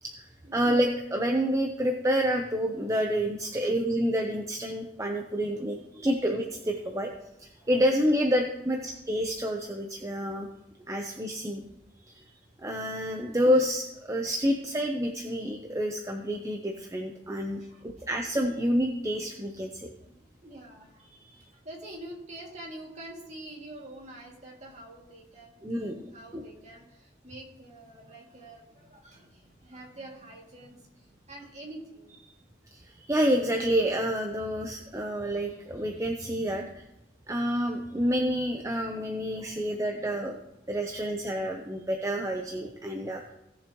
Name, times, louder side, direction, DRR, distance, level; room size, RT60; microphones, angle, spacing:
voice 1, 0.5-7.1 7.4-10.5 10.9-11.6 12.1-12.3 12.6-19.9 25.6-26.0 26.3-26.4 32.7-36.8 37.3-40.3 40.7-43.3, equal, 15° right, 2 dB, 0.7 m, -28 dB
voice 2, 17.6-18.1 20.0-32.1 32.5-32.6 39.3-39.7, right 1 dB, 40° right, -1 dB, 2.3 m, -47 dB
17.0 x 7.0 x 3.0 m, 0.92 s
head